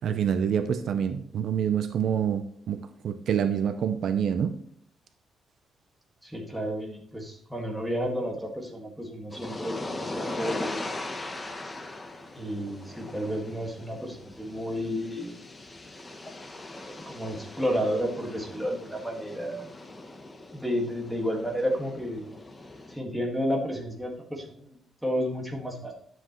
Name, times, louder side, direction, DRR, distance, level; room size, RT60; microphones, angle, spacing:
voice 1, 0.0-4.5, right 8 dB, 60° right, 9 dB, 0.6 m, -27 dB
voice 2, 6.2-10.9 12.3-15.4 16.5-19.7 20.5-22.3 22.9-25.9, equal, ahead, -1 dB, 1.8 m, -32 dB
sound 1, 9.3-23.0, left 2 dB, 20° left, 0.9 m, -40 dB
11.5 x 7.7 x 3.1 m, 0.65 s
cardioid pair, 160°, 0 cm